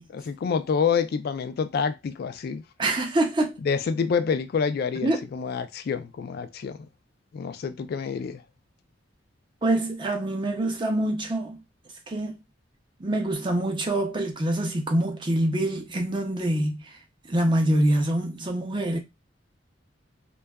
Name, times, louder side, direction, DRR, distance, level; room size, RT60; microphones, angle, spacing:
voice 1, 0.1-2.6 3.6-6.9 7.3-8.4, left 6 dB, 55° left, 0.3 m, -27 dB
voice 2, 2.8-3.5 5.0-5.2 9.6-11.6 12.1-12.4 13.0-16.9 17.3-19.0, right 1 dB, 25° right, 0.5 m, -25 dB
2.6 x 2.2 x 2.2 m
head